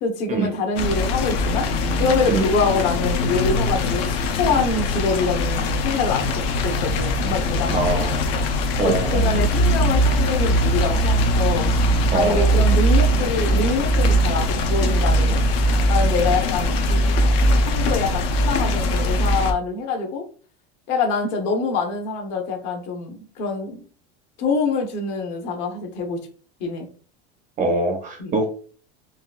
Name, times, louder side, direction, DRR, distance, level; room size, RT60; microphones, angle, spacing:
voice 1, 0.0-1.7 1.9-8.0 8.8-11.7 12.1-15.4 15.9-17.0 17.6-20.2 20.9-23.8 24.4-26.2 26.6-26.9 28.2-28.4, left 4 dB, 55° left, 3 dB, 0.9 m, -25 dB
sound 1, 0.8-19.5, equal, 75° left, 0.6 m, -21 dB
voice 2, 7.7-8.2 8.8-9.3 12.1-12.6 27.6-28.5, right 3 dB, 25° right, 4 dB, 0.4 m, -23 dB
3.8 x 2.5 x 2.3 m, 0.41 s
cardioid pair, 160°, 30 cm